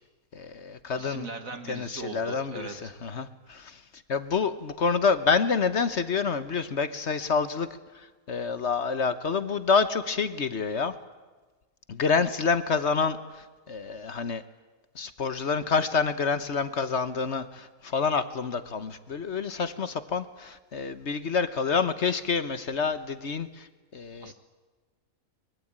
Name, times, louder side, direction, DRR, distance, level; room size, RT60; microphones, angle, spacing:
voice 1, 0.3-1.3 1.7-3.8 4.1-7.7 7.9-10.9 11.9-14.4 14.9-24.3, left 5 dB, 55° left, 12 dB, 1.3 m, -28 dB
voice 2, 1.0-2.9 24.2-24.3, right 3 dB, 70° right, 7 dB, 2.5 m, -39 dB
24.0 x 22.5 x 8.8 m, 1.3 s
omnidirectional pair, 1.5 m